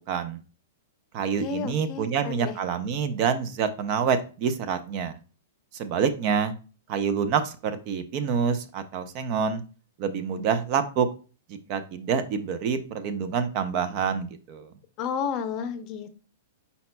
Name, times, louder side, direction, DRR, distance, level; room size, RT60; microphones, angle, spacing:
voice 1, 0.1-0.4 1.1-5.2 5.7-6.5 6.9-9.6 10.0-11.1 11.5-14.7, right 6 dB, 45° right, 10 dB, 0.6 m, -27 dB
voice 2, 1.4-2.6 15.0-16.1, left 6 dB, 40° left, 10 dB, 0.6 m, -31 dB
5.6 x 4.1 x 2.2 m, 0.35 s
hypercardioid pair, 125°, 0 cm